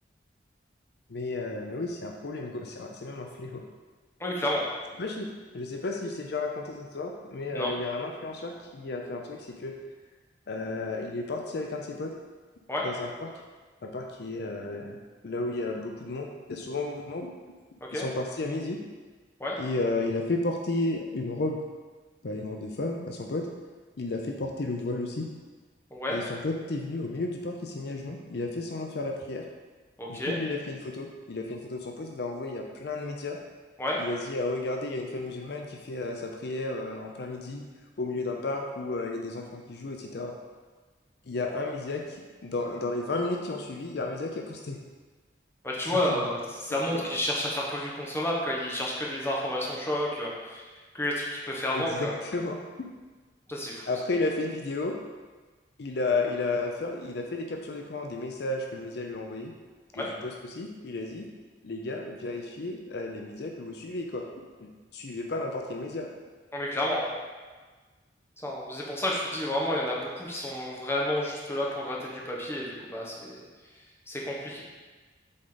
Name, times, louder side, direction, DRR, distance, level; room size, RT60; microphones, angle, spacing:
voice 1, 1.1-3.6 5.0-9.8 10.5-12.1 12.8-13.3 13.8-15.0 15.2-17.3 17.9-18.8 19.6-21.6 22.2-23.5 24.0-25.3 26.1-29.4 30.1-33.4 34.0-37.7 38.0-40.3 41.3-44.8 45.8-46.3 46.7-47.0 51.7-52.6 53.9-55.0 55.8-59.5 59.9-61.3 61.6-66.1, left 2 dB, 65° left, 2 dB, 0.5 m, -33 dB
voice 2, 4.2-4.6 7.5-7.7 12.7-12.9 17.9-18.1 19.4-19.6 25.9-26.2 30.0-30.4 33.8-34.0 45.6-50.6 50.9-52.1 53.5-53.9 60.0-60.1 66.5-67.1 68.4-73.4 74.1-74.6, left 1 dB, 15° left, -3 dB, 1.0 m, -30 dB
7.6 x 3.8 x 3.9 m, 1.3 s
head